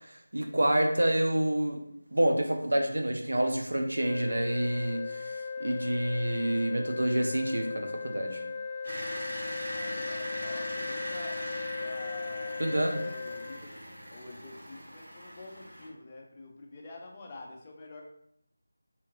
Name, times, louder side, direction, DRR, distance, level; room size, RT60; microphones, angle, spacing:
voice 1, 0.0-1.8 2.1-8.4 12.6-13.0, right 1 dB, 85° right, 4 dB, 0.5 m, -28 dB
sound 1, 3.9-13.6, left 5 dB, 10° right, 0.7 m, -37 dB
sound 2, 8.8-15.9, equal, 50° right, 1.0 m, -40 dB
voice 2, 9.6-11.4 11.8-12.6 12.9-13.8 14.1-18.0, left 2 dB, 20° left, -1 dB, 0.4 m, -47 dB
2.8 x 2.4 x 3.0 m, 0.71 s
figure-of-eight pair, 175°, 0 cm